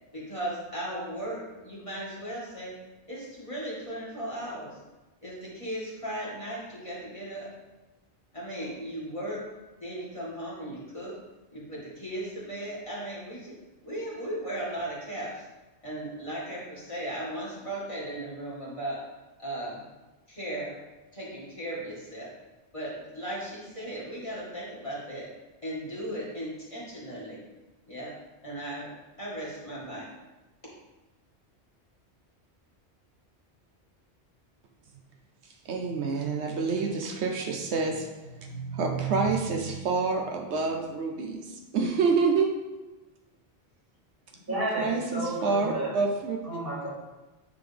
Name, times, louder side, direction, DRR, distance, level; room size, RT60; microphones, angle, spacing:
voice 1, 0.1-2.7 3.1-4.8 5.2-7.5 8.3-9.4 9.8-11.2 11.5-13.6 13.8-15.5 15.8-19.0 19.4-19.9 20.3-20.7 21.1-22.3 22.7-25.3 25.6-27.4 27.9-28.1 28.4-28.9 29.2-30.1, right 1 dB, 30° left, -8 dB, 2.0 m, -36 dB
voice 2, 35.4-42.5 44.5-46.4, right 4 dB, 80° right, 3 dB, 1.0 m, -28 dB
voice 3, 44.5-46.0 46.4-46.9, right 1 dB, 55° right, -7 dB, 2.7 m, -32 dB
9.2 x 3.8 x 3.4 m, 1.1 s
omnidirectional pair, 1.1 m